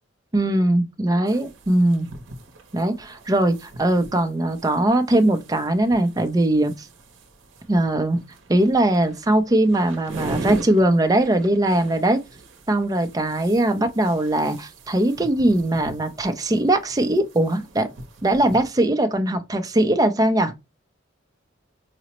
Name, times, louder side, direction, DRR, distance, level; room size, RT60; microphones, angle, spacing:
voice 1, 0.3-2.1 2.7-6.9 7.7-8.2 8.5-12.2 12.7-17.9 18.2-20.5, right 1 dB, 20° right, 0.5 m, -20 dB
sound 1, 1.3-18.7, right 2 dB, 75° right, 0.7 m, -40 dB
4.9 x 2.0 x 2.9 m
head